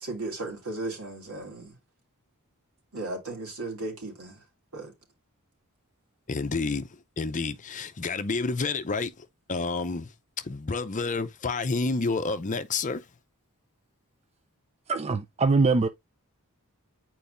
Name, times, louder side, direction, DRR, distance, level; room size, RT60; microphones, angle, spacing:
voice 1, 0.0-1.7 2.9-4.4 4.7-4.9, right 2 dB, 70° right, 2.8 m, -35 dB
voice 2, 6.3-6.9 7.2-10.1 10.4-13.0, left 3 dB, 35° left, 0.6 m, -29 dB
voice 3, 14.9-15.9, right 3 dB, 30° right, 0.4 m, -23 dB
8.9 x 4.6 x 2.6 m
head